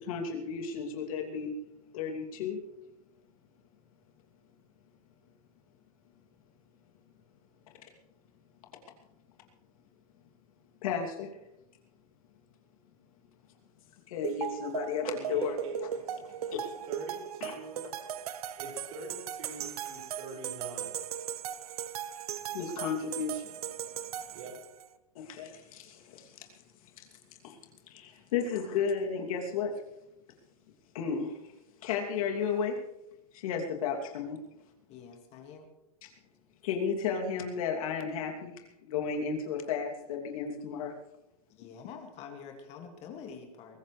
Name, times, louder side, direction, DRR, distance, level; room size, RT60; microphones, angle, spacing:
voice 1, 0.0-1.5 1.9-2.6 10.8-11.3 14.1-15.6 16.5-16.7 17.4-17.6 17.8-18.0 22.5-23.5 25.1-26.5 27.0-27.1 27.4-27.6 27.9-29.7 30.9-31.4 31.8-32.8 33.3-34.4 36.0-36.1 36.6-40.9, left 6 dB, 65° left, 1 dB, 2.9 m, -33 dB
sound 1, 14.2-24.9, right 10 dB, 75° right, 1.0 m, -38 dB
voice 2, 15.3-15.8 16.1-16.2 16.9-17.9 18.6-21.0 24.3-24.5, right 3 dB, 55° right, 0 dB, 5.8 m, -43 dB
voice 3, 34.9-35.7 41.6-43.8, left 6 dB, 35° left, 4 dB, 2.4 m, -46 dB
22.5 x 15.0 x 3.4 m, 0.91 s
hypercardioid pair, 145°, 20 cm